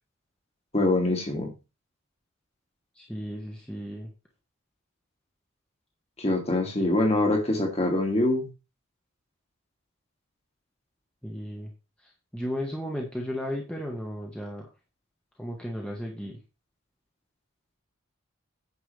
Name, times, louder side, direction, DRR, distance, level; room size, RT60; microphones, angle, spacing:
voice 1, 0.7-1.5 6.2-8.5, left 2 dB, 30° left, 2 dB, 2.2 m, -24 dB
voice 2, 2.9-4.1 11.2-11.7 12.3-14.6 15.4-16.4, equal, 5° left, -1 dB, 1.4 m, -34 dB
9.6 x 7.0 x 3.4 m, 0.29 s
head